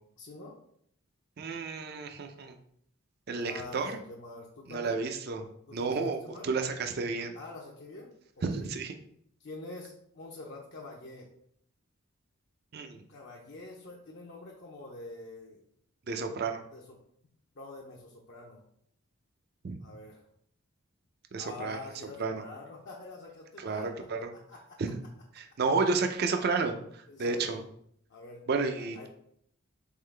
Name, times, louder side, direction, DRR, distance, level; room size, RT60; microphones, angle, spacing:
voice 1, 0.2-0.6 3.4-5.0 5.7-6.5 7.3-8.7 9.4-11.3 13.1-15.6 16.7-17.0 17.5-18.6 19.8-20.3 21.4-23.9 24.5-24.8 27.1-27.6 28.1-28.4 28.8-29.1, left 2 dB, 55° left, -2 dB, 0.6 m, -45 dB
voice 2, 1.4-2.6 3.3-3.9 4.7-5.5 5.7-7.4 8.4-8.9 12.7-13.0 16.1-16.6 19.6-19.7 21.3-21.8 22.2-22.4 23.6-24.2 24.8-24.9 25.4-27.6 28.5-29.1, right 4 dB, 50° right, 6 dB, 0.4 m, -31 dB
3.9 x 3.7 x 3.2 m, 0.68 s
head